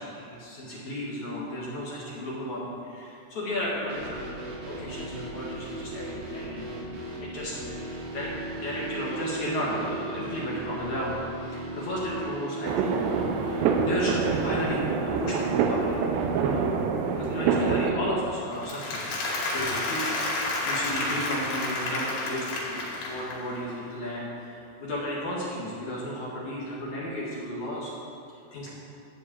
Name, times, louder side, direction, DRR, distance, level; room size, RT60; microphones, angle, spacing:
voice 1, 0.0-6.7 7.2-11.2 11.4-16.0 16.4-16.8 17.2-19.0 19.5-27.9 28.3-28.7, equal, 55° left, -5 dB, 2.4 m, -34 dB
sound 1, 3.9-16.2, right 2 dB, 55° right, 3.0 m, -37 dB
sound 2, 12.6-17.9, right 5 dB, 80° right, 3.0 m, -26 dB
Applause, 18.5-23.6, left 2 dB, 85° left, 4.7 m, -30 dB
12.5 x 5.3 x 8.5 m, 2.7 s
omnidirectional pair, 5.0 m